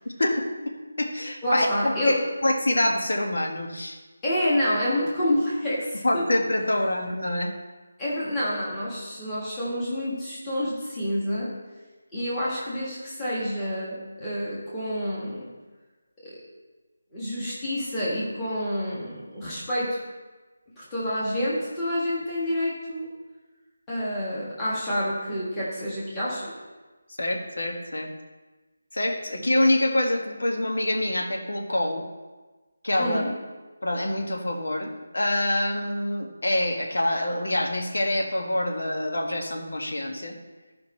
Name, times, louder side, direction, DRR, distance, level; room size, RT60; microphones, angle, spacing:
voice 1, 0.2-4.0 6.0-7.5 27.2-28.1 28.9-32.0 32.8-33.2 33.8-40.4, left 1 dB, 80° left, 2 dB, 1.6 m, -26 dB
voice 2, 1.4-2.2 4.2-6.2 8.0-11.5 12.1-15.4 16.2-16.4 17.1-20.0 20.8-23.1 23.9-26.5 33.0-33.3, equal, 10° left, -9 dB, 1.4 m, -28 dB
14.0 x 5.1 x 4.3 m, 1.2 s
figure-of-eight pair, 180°, 0 cm